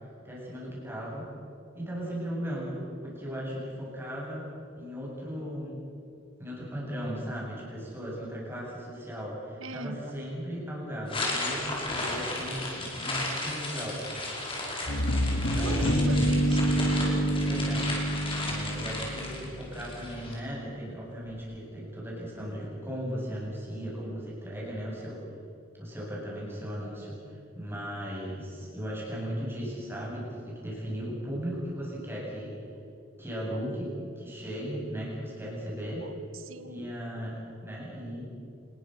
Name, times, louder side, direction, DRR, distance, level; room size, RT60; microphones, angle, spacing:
voice 1, 0.2-1.3 1.7-4.5 4.8-5.8 6.4-14.2 15.3-16.4 17.5-17.9 18.4-25.2 25.8-32.6 33.2-36.1 36.6-38.3, equal, 10° right, -5 dB, 7.9 m, -37 dB
voice 2, 9.6-10.0 15.6-16.8 36.0-36.9, right 2 dB, 70° right, 11 dB, 1.5 m, -40 dB
sound 1, 11.1-20.4, left 2 dB, 25° left, 5.3 m, -34 dB
sound 2, 14.9-19.7, equal, 70° left, 2.1 m, -27 dB
28.0 x 21.0 x 6.6 m, 2.7 s
head